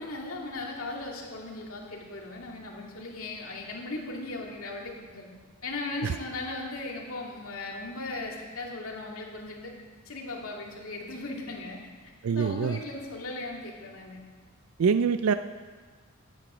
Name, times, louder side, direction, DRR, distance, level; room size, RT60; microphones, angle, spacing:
voice 1, 0.0-5.3 5.6-9.7 10.1-11.8 12.3-14.2, left 2 dB, 80° left, -1 dB, 2.3 m, -37 dB
voice 2, 12.2-12.8 14.8-15.3, right 6 dB, 80° right, 11 dB, 0.4 m, -24 dB
15.0 x 9.0 x 5.0 m, 1.5 s
head